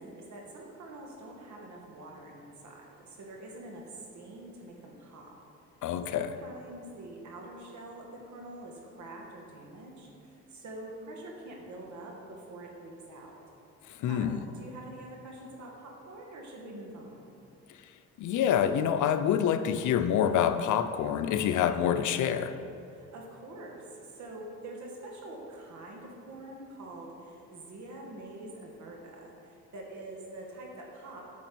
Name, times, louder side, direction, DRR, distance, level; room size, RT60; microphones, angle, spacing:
voice 1, 0.0-5.3 6.1-13.4 14.1-17.3 22.9-31.3, right 1 dB, 70° right, 0 dB, 2.0 m, -45 dB
voice 2, 5.8-6.3 14.0-14.4 18.2-22.6, left 9 dB, 75° left, 9 dB, 0.6 m, -27 dB
8.8 x 6.1 x 6.1 m, 2.5 s
cardioid pair, 90°, 30 cm